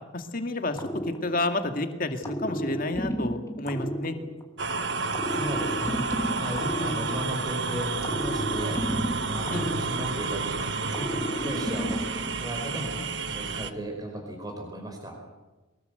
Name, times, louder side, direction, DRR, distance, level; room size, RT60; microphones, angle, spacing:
voice 1, 0.1-0.8 1.2-4.2 6.8-7.1 9.5-9.7, left 2 dB, 40° left, 6 dB, 2.3 m, -30 dB
sound 1, 0.8-1.8 2.2-4.6 5.1-7.5 8.0-10.4 10.9-12.4, equal, 15° left, 2.8 m, -32 dB
sound 2, 4.6-13.7, right 4 dB, 55° right, 1.3 m, -30 dB
voice 2, 5.1-6.0 6.3-8.8 9.3-13.0 13.3-15.3, right 1 dB, 20° right, 1 dB, 4.8 m, -36 dB
24.0 x 20.0 x 8.2 m, 1.1 s
head